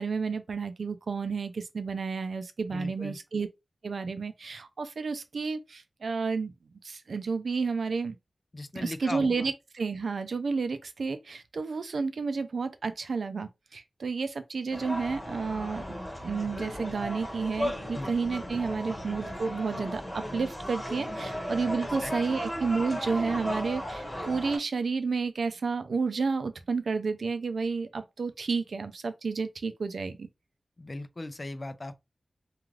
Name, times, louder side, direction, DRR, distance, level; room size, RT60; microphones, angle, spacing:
voice 1, 0.0-3.5 3.8-6.5 6.8-8.2 8.8-15.8 16.2-20.0 20.3-30.3, right 4 dB, 90° right, 0.4 m, -31 dB
voice 2, 2.7-3.2 8.5-9.5 17.9-18.1 22.0-22.4 30.8-31.9, left 2 dB, 35° left, 0.3 m, -38 dB
sound 1, 14.7-24.6, equal, 20° left, 1.3 m, -36 dB
2.4 x 2.3 x 3.1 m
wide cardioid pair, 100°, 0 cm